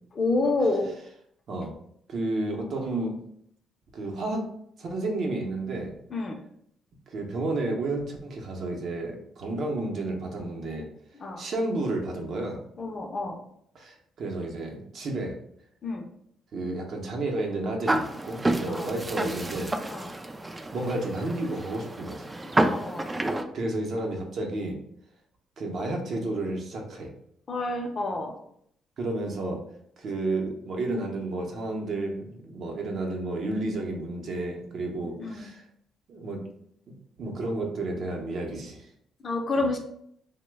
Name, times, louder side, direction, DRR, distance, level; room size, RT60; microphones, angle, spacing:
voice 1, 0.2-0.9 6.1-6.4 11.2-11.4 12.8-13.4 15.8-16.1 18.7-18.9 19.9-20.1 22.7-23.1 27.5-28.3 35.2-35.5 39.2-39.8, left 2 dB, 40° left, 2 dB, 0.6 m, -28 dB
voice 2, 2.1-3.2 3.9-4.4 4.8-5.9 7.1-10.9 11.4-12.6 13.7-15.3 16.5-19.7 20.5-22.3 23.5-24.8 25.6-27.1 29.0-29.6 30.0-35.6 36.1-36.4 37.2-38.9 39.6-39.7, right 2 dB, 60° right, 1 dB, 0.7 m, -31 dB
sound 1, 17.9-23.4, right 1 dB, 20° right, 0.3 m, -29 dB
2.9 x 2.1 x 3.3 m, 0.70 s
cardioid pair, 90°, 0 cm